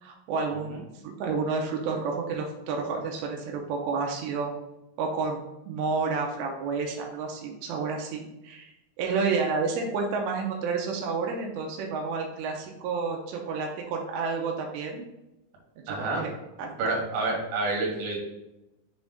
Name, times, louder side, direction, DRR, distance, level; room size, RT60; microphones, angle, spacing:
voice 1, 0.0-0.7 1.2-4.5 5.0-5.4 5.7-15.0 15.9-16.3 16.6-16.8, right 4 dB, 90° right, 1 dB, 2.9 m, -30 dB
voice 2, 15.9-16.2 16.8-18.2, right 3 dB, 65° right, -2 dB, 3.1 m, -28 dB
7.0 x 3.5 x 4.0 m, 0.94 s
omnidirectional pair, 4.9 m